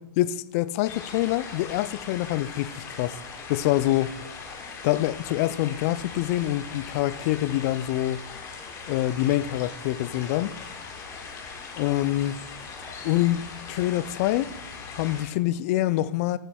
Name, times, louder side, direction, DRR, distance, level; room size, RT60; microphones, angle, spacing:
voice 1, 0.2-3.2 3.5-4.1 4.8-8.2 8.9-10.6 11.8-12.4 13.0-14.5 14.9-16.4, left 15 dB, 40° left, 0.4 m, -25 dB
Burbling stream birds in background, 0.8-15.3, left 5 dB, 25° left, 1.5 m, -40 dB
11.0 x 7.7 x 2.3 m
hypercardioid pair, 115°, 11 cm